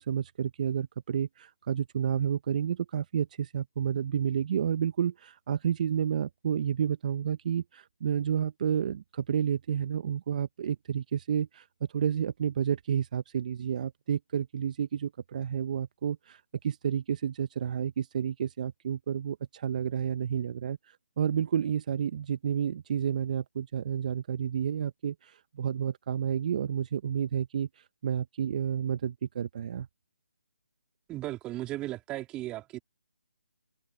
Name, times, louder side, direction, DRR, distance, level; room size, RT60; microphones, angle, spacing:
voice 1, 0.0-11.7 11.9-29.9, right 8 dB, 40° right, 1.2 m, -30 dB
voice 2, 31.1-32.8, right 16 dB, 15° right, 3.7 m, -36 dB
figure-of-eight pair, 155°, 6 cm